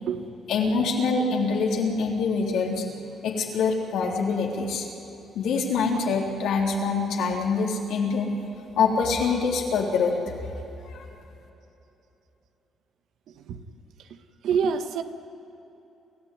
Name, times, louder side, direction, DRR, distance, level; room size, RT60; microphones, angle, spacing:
voice 1, 0.5-2.8 3.2-4.9 5.4-8.3 8.8-10.2 10.9-11.0, left 4 dB, 85° left, 0 dB, 3.7 m, -25 dB
voice 2, 13.3-13.6 14.0-14.2 14.4-15.0, right 6 dB, 80° right, 9 dB, 1.4 m, -27 dB
28.0 x 14.5 x 9.5 m, 3.0 s
cardioid pair, 90°, 0 cm